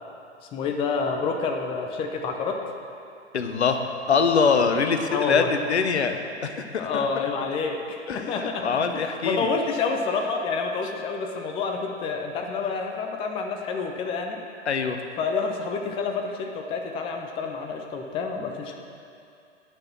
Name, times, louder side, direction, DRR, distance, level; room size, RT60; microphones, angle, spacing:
voice 1, 0.5-2.6 5.1-5.5 6.8-14.4 15.2-18.8, left 4 dB, 15° left, 3 dB, 0.6 m, -28 dB
voice 2, 3.3-3.8 4.1-6.2 6.4-7.1 8.1-9.5 14.7-15.0, left 5 dB, 65° left, 7 dB, 0.9 m, -23 dB
9.6 x 6.3 x 7.2 m, 2.5 s
figure-of-eight pair, 105°, 35 cm